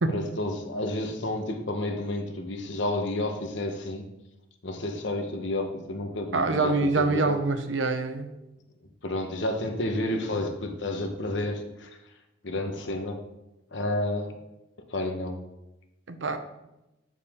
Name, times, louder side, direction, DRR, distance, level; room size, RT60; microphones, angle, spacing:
voice 1, 0.1-4.1 4.6-7.4 9.0-11.9 12.4-13.2 13.7-14.4 14.9-15.4, left 1 dB, 70° left, 5 dB, 1.0 m, -30 dB
voice 2, 6.3-8.3 16.1-16.4, right 3 dB, 85° right, 8 dB, 0.8 m, -25 dB
7.0 x 6.9 x 3.6 m, 0.92 s
head